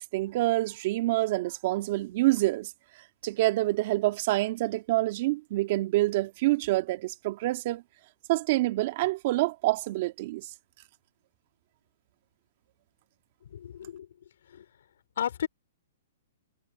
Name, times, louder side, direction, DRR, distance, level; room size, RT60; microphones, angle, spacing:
voice 1, 0.0-2.7 3.2-7.8 8.3-10.4, right 18 dB, 45° right, 1.7 m, -27 dB
voice 2, 13.5-14.1 14.5-14.6 15.2-15.5, left 9 dB, 70° left, 3.4 m, -33 dB
hypercardioid pair, 140°, 0 cm